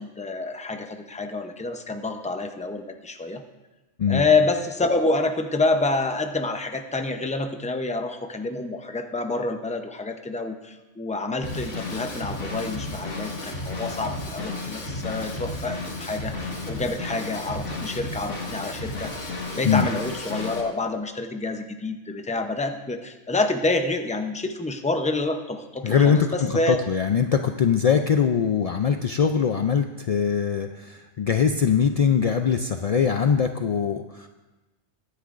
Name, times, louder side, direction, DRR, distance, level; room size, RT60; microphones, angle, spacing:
voice 1, 0.0-3.4 4.1-19.1 19.5-26.8, left 3 dB, 10° left, 6 dB, 0.5 m, -27 dB
Drum kit / Drum, 11.4-20.6, left 2 dB, 90° left, 2.0 m, -33 dB
voice 2, 25.8-26.3 26.7-34.3, left 7 dB, 65° left, 6 dB, 0.3 m, -22 dB
22.5 x 9.9 x 2.5 m, 1.1 s
omnidirectional pair, 1.2 m